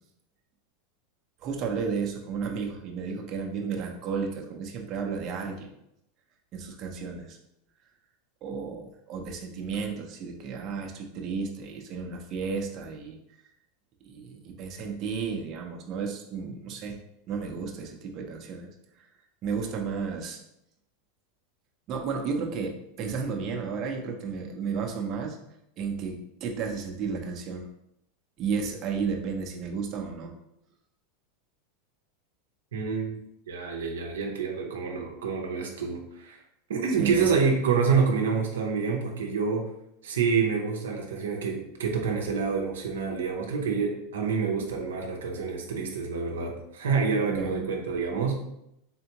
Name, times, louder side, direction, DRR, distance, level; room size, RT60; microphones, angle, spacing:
voice 1, 1.4-5.7 6.5-7.4 8.4-13.2 14.0-17.0 17.3-18.7 19.0-19.1 19.4-20.4 21.9-25.4 25.8-27.6 28.4-30.3 37.0-37.3 47.3-47.7, right 5 dB, 45° right, 1 dB, 0.7 m, -33 dB
voice 2, 32.7-33.2 33.5-36.4 36.7-39.7 40.0-48.4, right 5 dB, 85° right, 1 dB, 0.7 m, -27 dB
3.6 x 3.3 x 2.9 m, 0.80 s
hypercardioid pair, 105°, 0 cm